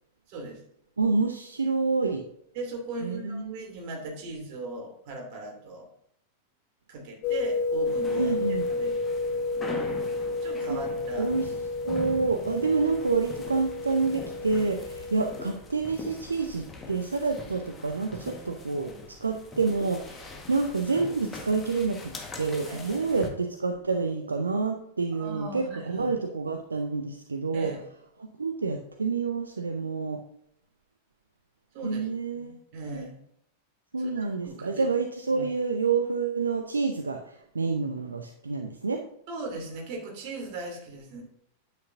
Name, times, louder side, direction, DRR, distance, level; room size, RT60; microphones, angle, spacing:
voice 1, 0.3-0.6 2.5-5.9 6.9-8.3 8.7-9.0 9.2-9.4 10.4-11.3 22.7-23.3 25.1-26.1 27.5-27.8 31.7-32.1 32.3-33.2 34.0-34.9 35.3-35.5 39.3-41.2, right 2 dB, 45° right, 0 dB, 2.8 m, -38 dB
voice 2, 1.0-2.2 3.0-3.6 8.2-8.7 10.7-10.8 11.2-11.5 11.8-18.9 19.2-22.1 22.4-27.7 28.4-30.2 31.8-32.6 32.9-33.1 33.9-39.0, right 4 dB, 75° right, 4 dB, 0.7 m, -28 dB
sound 1, 7.2-15.5, left 3 dB, 40° left, 0.5 m, -31 dB
sound 2, 7.9-23.3, left 3 dB, 20° left, 1.5 m, -43 dB
9.5 x 8.3 x 2.7 m, 0.72 s
figure-of-eight pair, 90°, 0 cm